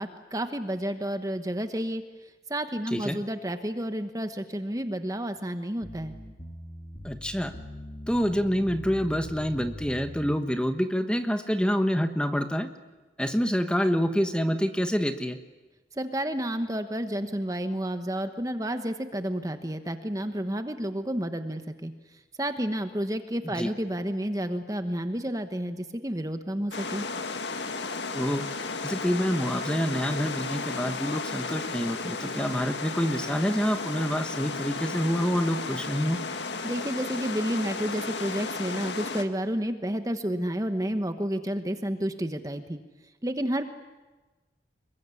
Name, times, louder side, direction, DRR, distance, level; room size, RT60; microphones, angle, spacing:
voice 1, 0.0-2.0 2.5-6.1 16.0-21.9 22.4-27.1 36.6-42.8 43.2-43.6, right 1 dB, 20° right, 8 dB, 1.1 m, -30 dB
sound 1, 5.8-10.4, equal, 35° left, 3.0 m, -42 dB
voice 2, 7.0-7.5 8.1-12.7 13.2-15.4 23.4-23.7 28.1-28.5 28.8-36.2, equal, 5° left, 7 dB, 1.2 m, -27 dB
sound 2, 26.7-39.2, left 4 dB, 80° left, 1.9 m, -34 dB
26.5 x 22.5 x 9.8 m, 1.2 s
head